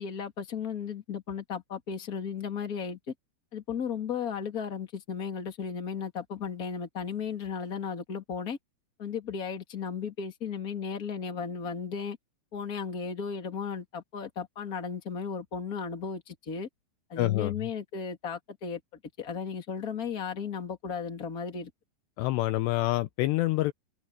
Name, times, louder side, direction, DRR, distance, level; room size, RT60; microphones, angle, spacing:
voice 1, 0.0-3.1 3.5-8.6 9.0-12.2 12.5-16.7 17.1-18.8 19.2-21.7, left 6 dB, 25° left, 2.2 m, -35 dB
voice 2, 17.2-17.5 22.2-23.7, left 17 dB, 85° left, 2.5 m, -26 dB
omnidirectional pair, 5.5 m